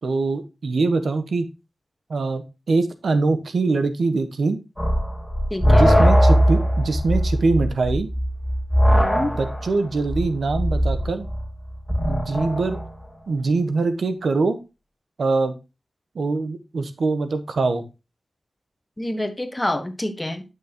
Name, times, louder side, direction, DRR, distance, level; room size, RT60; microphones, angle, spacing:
voice 1, 0.0-1.5 2.1-4.6 5.6-8.1 9.2-11.3 12.0-12.8 13.3-14.6 15.2-15.5 16.1-17.9, right 3 dB, 80° right, 1.1 m, -23 dB
sound 1, 4.8-12.9, equal, ahead, 3.4 m, -20 dB
voice 2, 5.5-5.9 8.9-9.3 19.0-20.4, left 1 dB, 20° left, 1.3 m, -27 dB
10.0 x 6.2 x 2.9 m
wide cardioid pair, 75°, 0 cm